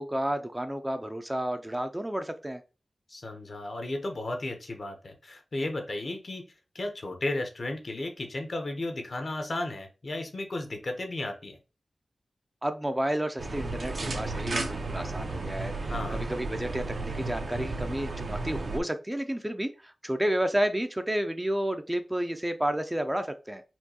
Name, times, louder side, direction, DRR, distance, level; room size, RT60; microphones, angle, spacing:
voice 1, 0.0-2.6 12.6-23.6, right 1 dB, 15° right, 8 dB, 0.4 m, -31 dB
voice 2, 3.1-6.4 6.7-11.6 15.9-16.2, left 2 dB, 60° left, 5 dB, 0.8 m, -34 dB
sound 1, 13.4-18.8, right 2 dB, 75° right, 0.7 m, -33 dB
4.4 x 2.3 x 2.8 m, 0.32 s
cardioid pair, 50°, 0 cm